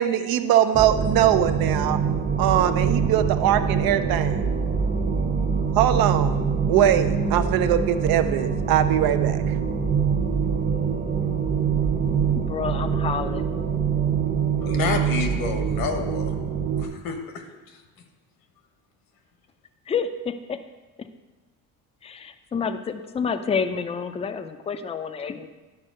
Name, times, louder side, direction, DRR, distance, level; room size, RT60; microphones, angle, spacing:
voice 1, 0.0-2.0 2.4-4.5 5.7-9.5, right 10 dB, 80° right, 9 dB, 0.7 m, -22 dB
sound 1, 0.7-16.8, right 6 dB, 30° right, 0.9 m, -24 dB
voice 2, 12.3-13.5 19.9-20.6 21.0-21.1 22.0-25.5, left 6 dB, 20° left, 10 dB, 0.4 m, -29 dB
voice 3, 14.6-16.4 16.8-17.8, left 5 dB, 75° left, 5 dB, 1.3 m, -30 dB
11.0 x 4.4 x 6.4 m, 1.2 s
cardioid pair, 125°, 35 cm